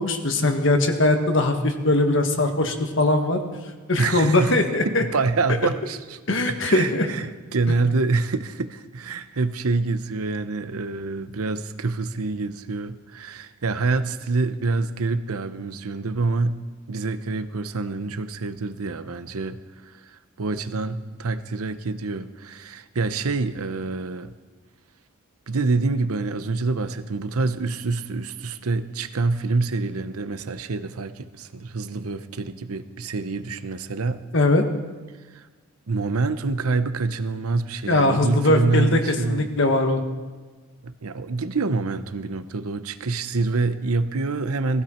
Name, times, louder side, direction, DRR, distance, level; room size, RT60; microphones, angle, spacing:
voice 1, 0.0-3.4 3.9-5.0 6.3-7.1 34.3-34.6 37.9-40.0, left 2 dB, 55° left, 5 dB, 1.5 m, -20 dB
voice 2, 4.0-4.6 4.8-6.2 6.5-16.6 16.9-19.6 20.1-24.3 25.5-34.2 35.3-35.4 35.9-39.5 40.8-44.8, right 3 dB, 85° right, 12 dB, 0.8 m, -26 dB
19.0 x 15.0 x 4.4 m, 1.3 s
head